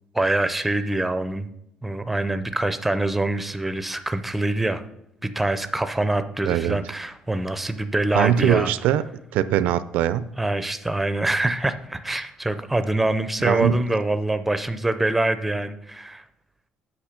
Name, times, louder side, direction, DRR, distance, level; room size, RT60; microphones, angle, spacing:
voice 1, 0.1-1.5 1.8-4.8 5.2-8.7 10.4-16.2, right 2 dB, 5° right, 10 dB, 0.5 m, -25 dB
voice 2, 6.4-6.8 8.1-9.0 9.3-10.3 13.4-13.8, right 11 dB, 85° right, 15 dB, 0.4 m, -21 dB
8.6 x 6.1 x 5.0 m, 0.80 s
cardioid pair, 160°, 3 cm